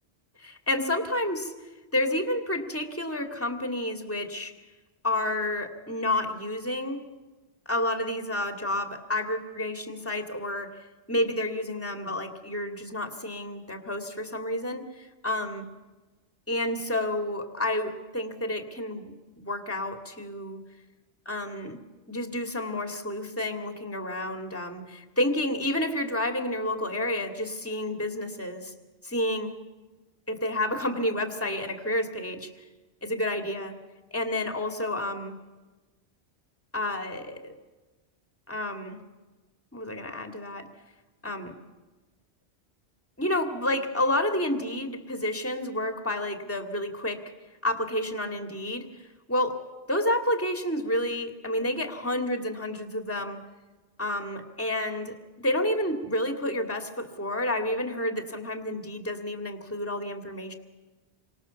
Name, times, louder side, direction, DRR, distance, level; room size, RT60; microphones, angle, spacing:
voice 1, 0.4-1.5 1.9-4.5 5.0-7.0 7.7-10.7 11.1-15.7 16.5-20.6 21.3-21.8 22.1-28.7 29.0-29.5 30.3-32.5 33.0-33.7 34.1-35.3 36.7-37.5 38.5-39.0 39.7-40.7 41.2-41.5 43.2-47.2 47.6-48.9 49.3-49.6 49.9-53.4 54.0-60.5, left 1 dB, 10° left, 5 dB, 2.4 m, -30 dB
28.5 x 24.5 x 7.1 m, 1.2 s
omnidirectional pair, 1.1 m